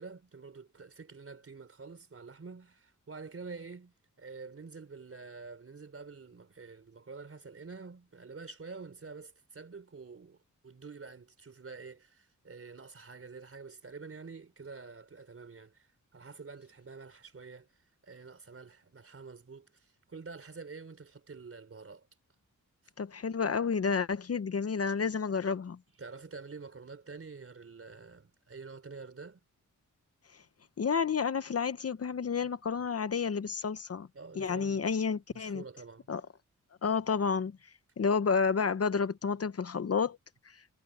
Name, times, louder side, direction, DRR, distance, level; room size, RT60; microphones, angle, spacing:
voice 1, 0.0-10.4 10.6-17.7 18.0-22.1 26.0-29.4 34.1-35.0 35.3-36.1, right 4 dB, 45° right, 4.1 m, -47 dB
voice 2, 23.0-25.8 30.8-34.1 34.4-35.6 36.1-36.2 36.8-37.5 38.0-40.2, left 5 dB, 50° left, 0.8 m, -30 dB
wide cardioid pair, 135°, 32 cm